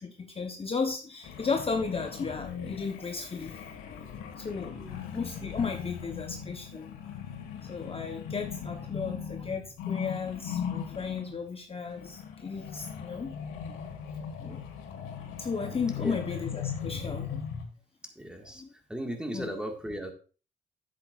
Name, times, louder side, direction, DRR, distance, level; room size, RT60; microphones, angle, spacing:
voice 1, 0.0-3.6 4.3-4.8 5.1-6.9 7.6-13.3 14.4-14.6 15.4-17.4 18.5-18.7 19.3-19.5, left 5 dB, 30° left, 3 dB, 1.0 m, -34 dB
sound 1, 1.2-11.4 11.8-17.6, left 7 dB, 90° left, 1.8 m, -39 dB
voice 2, 18.1-18.6 18.9-20.1, equal, 5° right, 3 dB, 1.8 m, -36 dB
10.0 x 8.2 x 2.5 m, 0.36 s
cardioid pair, 90°, 20 cm